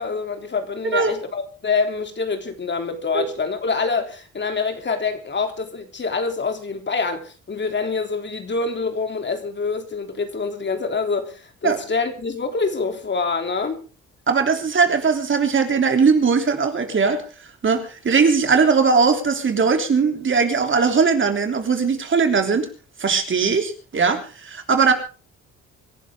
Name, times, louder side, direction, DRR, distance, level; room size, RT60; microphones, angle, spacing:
voice 1, 0.0-13.8, left 4 dB, 35° left, 3.3 m, -26 dB
voice 2, 14.3-17.2 17.6-22.7 23.0-24.9, right 5 dB, 40° right, 3.4 m, -19 dB
26.0 x 11.0 x 3.8 m
cardioid pair, 90°, 30 cm